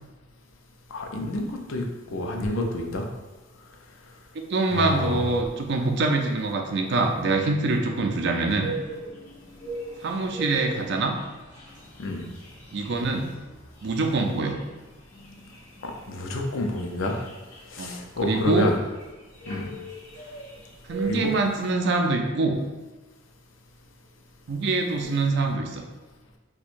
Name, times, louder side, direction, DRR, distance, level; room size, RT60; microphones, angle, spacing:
voice 1, 0.9-3.1 4.7-5.3 12.0-12.2 15.8-17.2 17.7-18.8 19.5-19.7 21.0-21.3, left 1 dB, 90° left, 2 dB, 0.5 m, -28 dB
voice 2, 4.5-8.7 10.0-11.1 12.7-13.3 13.8-14.6 17.8-17.9 18.2-18.7 20.9-22.6 24.5-25.8, right 3 dB, 60° right, 3 dB, 0.4 m, -24 dB
sound 1, 8.6-21.5, right 2 dB, 40° left, 1.4 m, -40 dB
4.4 x 2.2 x 2.5 m, 1.2 s
head